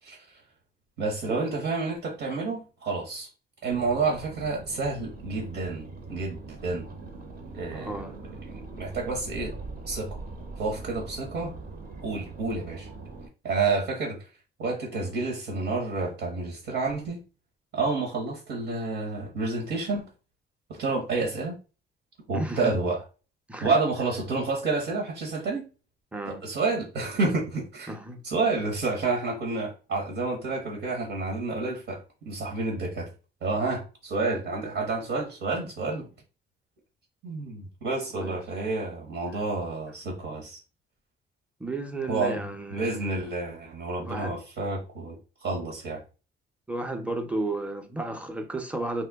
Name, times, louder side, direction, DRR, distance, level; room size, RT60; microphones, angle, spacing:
voice 1, 1.0-3.3 3.6-6.9 7.5-8.1 8.4-9.5 9.9-10.2 10.6-11.5 12.0-12.9 13.4-14.3 14.6-17.2 17.7-20.1 20.7-21.6 22.3-23.0 23.6-25.6 26.3-27.9 28.2-33.1 33.4-36.1 37.2-40.6 42.1-42.4 42.7-46.0, right 3 dB, 75° right, 1.0 m, -29 dB
sound 1, 3.7-13.3, right 3 dB, 50° right, 0.8 m, -42 dB
voice 2, 7.7-8.2 22.3-22.8 23.5-23.7 26.1-26.4 27.9-28.2 38.1-38.3 41.6-43.1 44.0-44.4 46.7-49.1, right 2 dB, 5° right, 0.6 m, -33 dB
2.9 x 2.1 x 3.4 m
cardioid pair, 90°, 20 cm